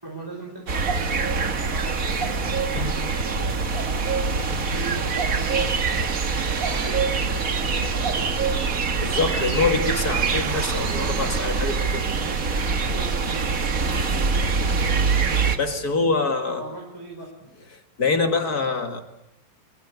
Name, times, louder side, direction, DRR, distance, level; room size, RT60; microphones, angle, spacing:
voice 1, 0.0-3.6 4.2-8.5 12.9-13.5 16.5-17.3, right 2 dB, 5° right, -1 dB, 4.2 m, -39 dB
sound 1, 0.7-15.6, right 4 dB, 45° right, 1.0 m, -24 dB
Wind instrument woodwind instrument, 3.5-12.5, right 3 dB, 80° left, 5.5 m, -52 dB
Car, 8.6-14.5, right 9 dB, 60° right, 2.2 m, -38 dB
voice 2, 9.0-12.1 15.6-16.6 17.7-19.0, left 4 dB, 35° left, 6 dB, 1.9 m, -25 dB
25.5 x 21.5 x 8.3 m, 0.86 s
omnidirectional pair, 3.9 m